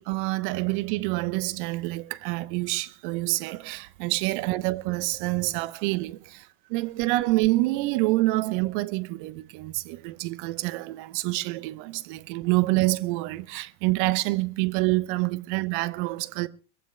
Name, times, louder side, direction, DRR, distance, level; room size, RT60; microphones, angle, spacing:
voice 1, 0.0-16.5, right 20 dB, 45° right, 0.9 m, -27 dB
24.5 x 15.0 x 2.2 m
hypercardioid pair, 105°, 34 cm